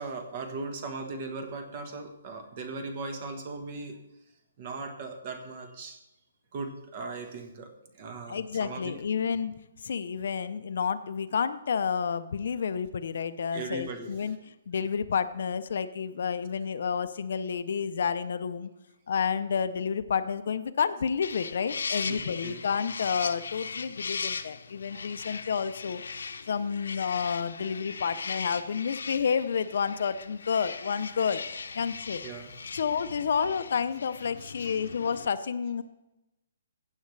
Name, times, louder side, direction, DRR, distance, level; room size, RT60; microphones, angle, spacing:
voice 1, 0.0-4.0 4.6-6.0 6.5-8.9 13.5-14.4 22.0-22.7 24.9-25.0 32.2-32.8 34.4-34.8, right 3 dB, 30° right, 6 dB, 1.2 m, -39 dB
voice 2, 8.3-9.5 9.8-14.4 14.7-18.7 19.1-26.0 26.5-31.4 31.7-32.2 32.7-35.8, left 6 dB, 55° left, 12 dB, 0.5 m, -30 dB
sound 1, 21.2-35.3, left 5 dB, 90° left, 0.7 m, -39 dB
16.0 x 8.2 x 3.2 m, 0.93 s
hypercardioid pair, 175°, 0 cm